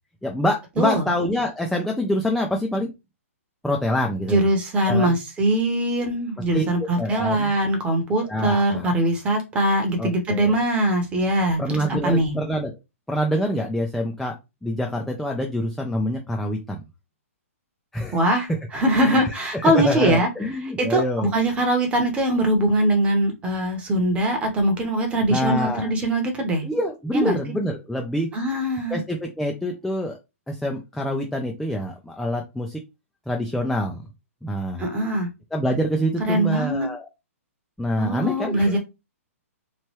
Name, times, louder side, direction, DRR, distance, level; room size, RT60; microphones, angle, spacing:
voice 1, 0.2-2.9 3.6-4.4 4.9-5.2 6.5-6.7 7.0-7.5 8.3-8.9 10.0-10.5 11.6-12.7 13.1-14.3 14.6-16.8 17.9-18.2 19.0-19.2 19.5-21.3 25.3-25.9 26.6-28.3 28.9-30.2 30.5-32.8 33.3-34.0 34.4-34.8 35.5-37.1 37.8-38.8, equal, ahead, 1 dB, 0.3 m, -26 dB
voice 2, 0.8-1.1 4.3-11.6 12.0-12.3 18.1-20.3 20.6-26.7 27.1-27.4 28.3-29.0 34.8-35.3 36.3-36.9 38.0-38.8, right 1 dB, 15° right, 4 dB, 0.8 m, -22 dB
3.0 x 2.2 x 3.0 m, 0.25 s
hypercardioid pair, 140°, 8 cm